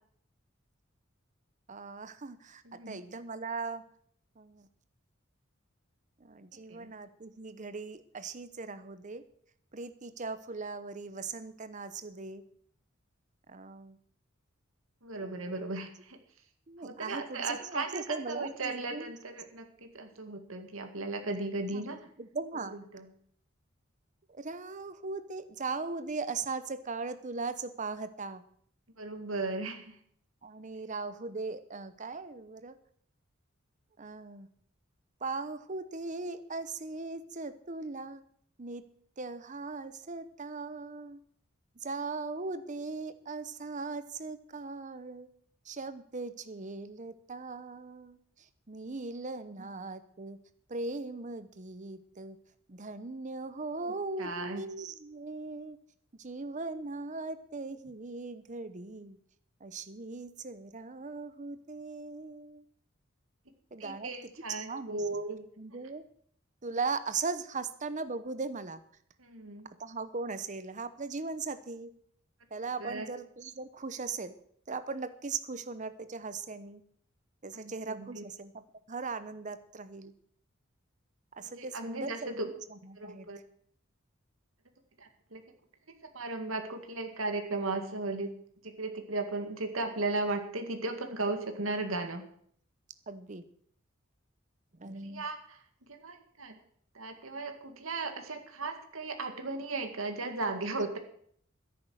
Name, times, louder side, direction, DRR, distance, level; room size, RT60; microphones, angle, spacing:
voice 1, 1.7-3.8 4.4-4.7 6.2-9.2 9.7-12.4 13.5-14.0 15.2-15.5 16.7-19.1 21.7-21.8 22.2-22.8 24.3-28.4 30.4-32.8 34.0-34.5 35.2-38.2 38.6-38.8 39.2-41.2 41.8-45.3 45.6-48.2 48.7-50.4 50.7-52.4 52.7-55.8 56.2-59.2 59.6-62.6 63.7-64.1 64.5-65.0 65.6-66.0 66.6-68.8 69.8-71.9 72.5-74.3 74.7-76.8 77.4-78.6 78.9-80.1 81.4-83.3 93.1-93.4 94.8-95.2, right 4 dB, 40° right, 12 dB, 0.9 m, -39 dB
voice 2, 2.6-3.0 6.7-6.9 15.0-16.2 16.8-22.0 22.5-23.1 29.0-30.0 49.5-49.7 53.7-54.6 63.8-65.5 69.2-69.7 72.8-73.1 77.5-78.2 81.4-82.5 83.0-83.4 85.0-85.4 86.1-88.3 88.6-92.2 95.0-95.6 95.9-96.6 96.9-101.0, right 3 dB, 85° right, 5 dB, 2.0 m, -36 dB
13.5 x 10.5 x 6.3 m, 0.63 s
head